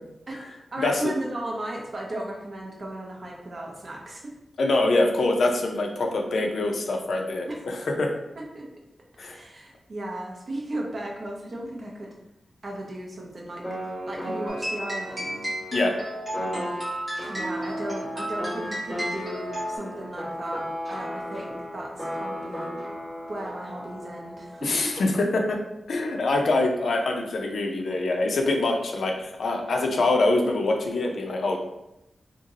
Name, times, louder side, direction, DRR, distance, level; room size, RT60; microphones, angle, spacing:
voice 1, 0.3-4.3 7.5-7.6 8.4-8.7 9.3-12.1 12.6-13.7 14.1-15.5 17.3-22.7 23.3-24.9, right 1 dB, 40° right, -1 dB, 0.6 m, -35 dB
voice 2, 0.8-1.1 4.6-8.1 9.2-9.4 15.7-15.9 24.6-25.6 25.9-31.6, left 2 dB, 75° left, 2 dB, 0.4 m, -24 dB
sound 1, 13.6-25.0, equal, 10° left, 1.3 m, -36 dB
sound 2, 14.5-19.8, right 1 dB, 10° right, 1.1 m, -33 dB
2.8 x 2.6 x 2.7 m, 0.88 s
wide cardioid pair, 175°, 0 cm